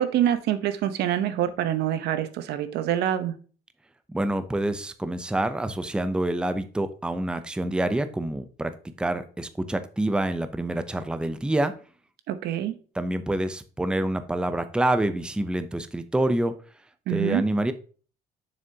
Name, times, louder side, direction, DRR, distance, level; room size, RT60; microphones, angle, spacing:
voice 1, 0.0-3.3 12.3-12.8 17.1-17.4, right 11 dB, 80° right, 11 dB, 0.9 m, -25 dB
voice 2, 4.1-8.7 9.0-11.7 13.0-16.5 17.1-17.7, right 1 dB, 5° right, 10 dB, 0.6 m, -27 dB
7.2 x 6.5 x 2.8 m, 0.39 s
cardioid pair, 110°, 17 cm